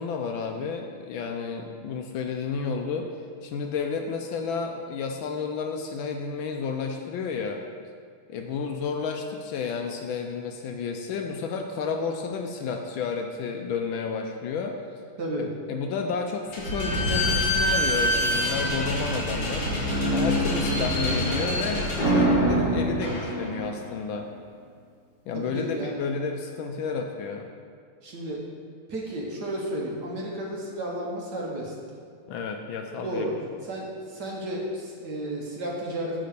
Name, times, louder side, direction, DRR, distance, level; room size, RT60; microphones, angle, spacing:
voice 1, 0.0-3.1 3.4-7.6 8.3-14.8 15.4-19.7 20.1-24.3 25.3-27.5 32.3-33.3, left 5 dB, 75° left, 4 dB, 1.2 m, -31 dB
Slam / Squeak, 16.5-23.8, equal, 55° left, 2.8 m, -25 dB
voice 2, 25.3-25.9 28.0-28.4 28.9-31.7 32.9-33.4 33.6-36.3, right 1 dB, 55° right, -2 dB, 1.4 m, -32 dB
9.3 x 3.7 x 6.6 m, 2.1 s
omnidirectional pair, 2.4 m